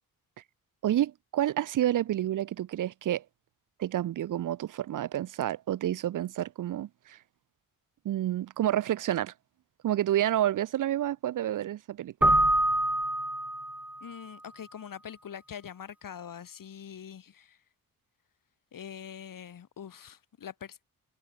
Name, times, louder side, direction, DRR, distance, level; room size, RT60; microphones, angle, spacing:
voice 1, 0.8-3.2 3.8-7.2 8.0-9.3 9.8-12.3, right 12 dB, 60° right, 0.5 m, -29 dB
Keyboard (musical), 12.2-14.0, right 1 dB, 5° right, 0.6 m, -25 dB
voice 2, 14.0-17.6 18.7-20.8, left 8 dB, 65° left, 2.7 m, -44 dB
wide cardioid pair, 125°, 36 cm